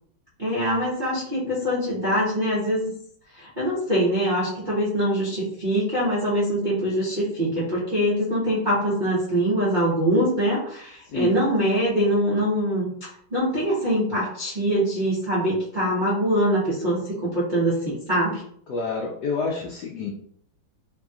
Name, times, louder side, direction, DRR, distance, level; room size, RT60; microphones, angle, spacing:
voice 1, 0.4-2.9 3.3-12.9 13.3-18.4, equal, 55° right, -10 dB, 0.5 m, -23 dB
voice 2, 18.7-20.1, left 4 dB, 75° left, -2 dB, 0.9 m, -28 dB
3.2 x 2.7 x 2.4 m, 0.64 s
omnidirectional pair, 2.2 m